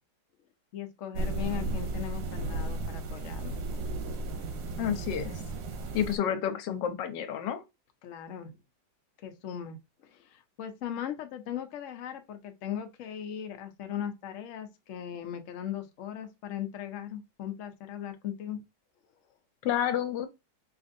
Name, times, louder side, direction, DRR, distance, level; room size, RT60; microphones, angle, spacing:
voice 1, 0.7-3.6 8.0-8.5 9.2-18.6, left 9 dB, 60° left, 0.8 m, -38 dB
sound 1, 1.1-6.2, right 2 dB, 85° right, 1.4 m, -34 dB
voice 2, 4.8-5.4 5.9-7.6 19.6-20.3, left 9 dB, 85° left, 1.3 m, -30 dB
4.8 x 2.6 x 2.6 m
omnidirectional pair, 1.9 m